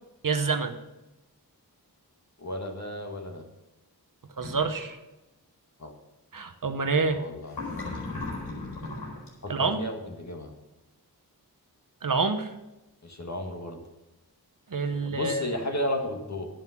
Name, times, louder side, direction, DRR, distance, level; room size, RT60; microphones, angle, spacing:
voice 1, 0.2-0.7 4.4-5.0 6.3-7.2 9.5-9.8 12.0-12.5 14.7-15.4, right 4 dB, 55° right, 8 dB, 1.0 m, -27 dB
voice 2, 2.4-3.4 5.8-5.9 7.1-7.6 9.4-10.5 13.0-13.8 15.0-16.5, left 1 dB, 45° left, 3 dB, 1.9 m, -33 dB
sound 1, 4.4-4.9 7.5-9.3, left 2 dB, 90° left, 4.6 m, -36 dB
11.0 x 8.2 x 5.9 m, 0.97 s
wide cardioid pair, 65°, 39 cm